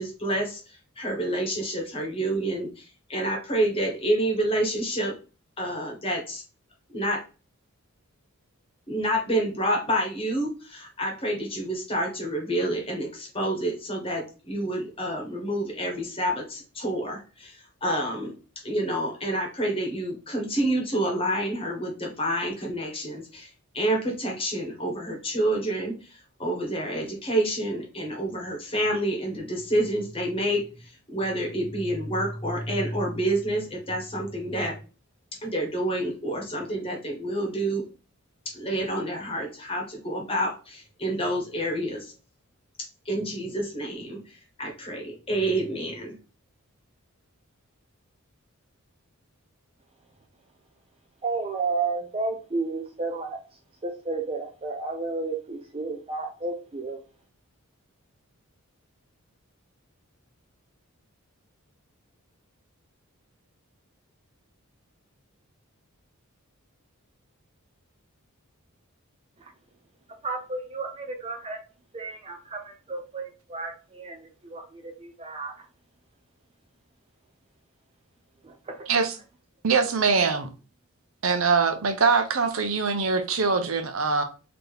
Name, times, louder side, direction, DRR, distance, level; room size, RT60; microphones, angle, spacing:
voice 1, 0.0-5.1 5.6-6.4 6.9-7.2 8.9-18.3 18.6-34.8 35.4-37.8 38.5-42.1 43.0-46.1, right 1 dB, 25° left, 1.2 m, -28 dB
voice 2, 51.2-53.4 53.8-57.0 70.2-71.6 71.9-75.5 78.4-78.5, right 3 dB, 25° right, 0.5 m, -32 dB
voice 3, 78.9-79.2 79.6-80.5 81.2-84.2, right 4 dB, 65° right, 0.6 m, -23 dB
4.3 x 2.8 x 3.3 m
head